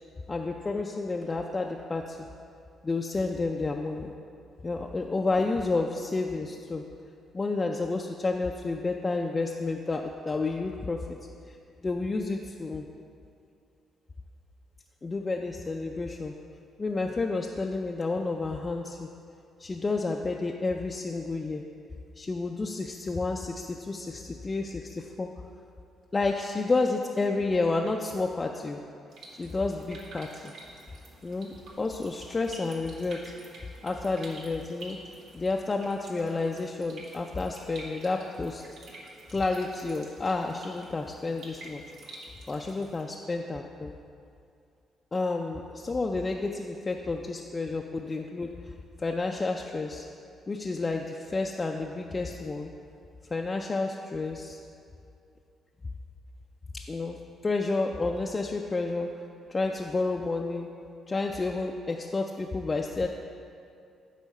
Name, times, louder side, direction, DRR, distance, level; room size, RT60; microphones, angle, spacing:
voice 1, 0.3-2.2 2.8-4.1 4.6-6.8 7.3-11.0 11.5-11.6 11.8-12.8 15.0-16.3 16.8-19.1 19.6-21.6 22.2-25.3 26.1-28.8 29.4-30.5 31.2-33.3 33.8-35.0 35.3-38.6 39.3-42.2 42.5-43.9 45.1-48.5 49.0-50.0 50.5-52.7 53.3-54.6 56.9-57.2 57.4-59.1 59.5-60.7 61.1-63.1, left 3 dB, 30° left, 1 dB, 0.4 m, -30 dB
sound 1, 29.1-43.0, right 2 dB, 70° right, 1.1 m, -49 dB
8.2 x 3.8 x 5.4 m, 2.5 s
cardioid pair, 90°, 0 cm